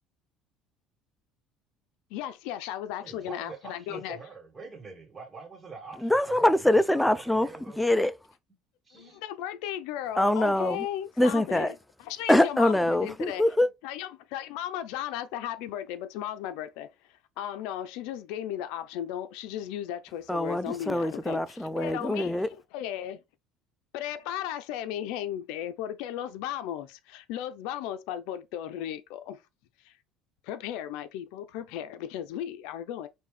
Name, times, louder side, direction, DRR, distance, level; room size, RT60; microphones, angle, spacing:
voice 1, 2.1-4.2 8.9-11.7 12.1-13.4 13.8-16.9 17.4-21.4 21.8-22.4 22.7-23.2 23.9-29.4 29.8-29.9 30.4-33.1, left 11 dB, 80° left, 0.5 m, -35 dB
voice 2, 3.0-6.5 7.1-7.8 8.9-9.2, right 4 dB, 20° right, 1.6 m, -45 dB
voice 3, 6.0-7.5 7.8-8.2 10.1-10.9 11.2-11.7 12.3-13.7 20.3-22.5, left 1 dB, 5° left, 0.3 m, -24 dB
5.3 x 2.7 x 3.2 m
cardioid pair, 125°, 0 cm